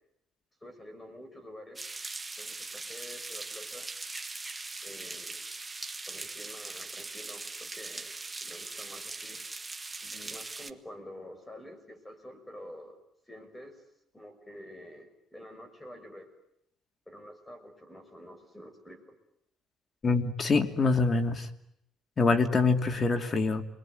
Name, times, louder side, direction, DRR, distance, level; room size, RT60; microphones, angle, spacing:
voice 1, 0.6-1.8 2.4-3.9 4.8-5.4 6.1-9.4 10.0-13.0 13.3-13.8 14.1-16.3 17.1-19.0, equal, 10° left, 6 dB, 6.0 m, -48 dB
sound 1, 1.8-10.7, right 3 dB, 15° right, 1.4 m, -40 dB
voice 2, 20.0-21.5 22.2-23.6, left 3 dB, 35° left, 7 dB, 2.7 m, -25 dB
29.5 x 21.5 x 9.4 m, 0.76 s
cardioid pair, 115°, 0 cm